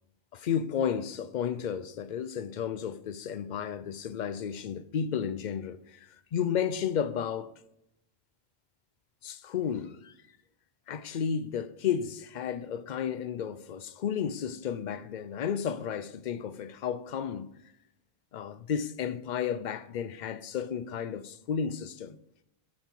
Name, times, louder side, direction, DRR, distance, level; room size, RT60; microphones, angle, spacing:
voice 1, 0.3-6.0 6.3-7.5 9.2-10.1 10.9-17.5 18.3-22.2, left 8 dB, 55° left, 0.6 m, -32 dB
11.5 x 4.3 x 4.4 m
omnidirectional pair, 1.0 m